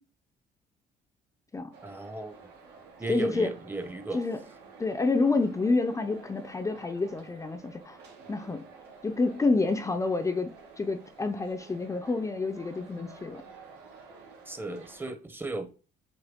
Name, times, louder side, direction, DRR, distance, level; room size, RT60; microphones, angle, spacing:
sound 1, 1.7-15.1, right 4 dB, 85° right, 2.1 m, -51 dB
voice 1, 1.8-2.3 3.0-4.2 14.5-15.7, right 2 dB, 10° right, 0.8 m, -36 dB
voice 2, 3.1-3.5 4.1-4.4 4.8-8.0 8.3-8.7 9.0-13.4, left 3 dB, 20° left, 0.5 m, -28 dB
8.0 x 3.2 x 3.6 m
cardioid pair, 110°, 17 cm